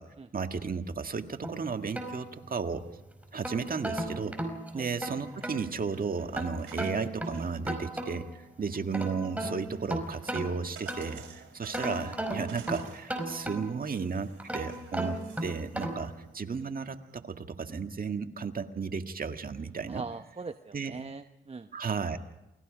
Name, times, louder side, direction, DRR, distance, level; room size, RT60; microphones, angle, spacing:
voice 1, 0.3-2.8 3.3-4.4 4.7-20.0 20.7-21.0 21.7-22.2, right 5 dB, 45° right, 6 dB, 1.9 m, -34 dB
sound 1, 1.4-2.8 3.2-5.6 6.3-8.4 8.7-11.3 11.7-13.9 14.4-16.1, right 1 dB, 5° right, 5.2 m, -36 dB
sound 2, 5.1-17.2, right 7 dB, 80° right, 3.5 m, -53 dB
voice 2, 19.9-21.7, right 4 dB, 30° right, 8 dB, 0.9 m, -41 dB
28.5 x 20.0 x 5.2 m, 0.94 s
cardioid pair, 60°, 20 cm